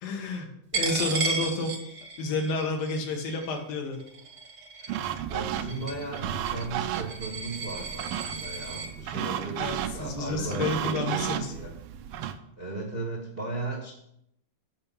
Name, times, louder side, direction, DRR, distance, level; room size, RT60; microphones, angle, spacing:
voice 1, 0.0-1.7 2.2-4.0 9.6-11.5, left 3 dB, 85° left, 2 dB, 3.2 m, -30 dB
Coin (dropping), 0.7-8.9, right 4 dB, 55° right, 1.4 m, -35 dB
sound 1, 4.9-12.4, right 10 dB, 80° right, 2.1 m, -34 dB
voice 2, 5.3-11.7 12.6-13.9, right 2 dB, 40° right, -1 dB, 0.8 m, -36 dB
8.9 x 5.5 x 5.5 m, 0.76 s
omnidirectional pair, 4.0 m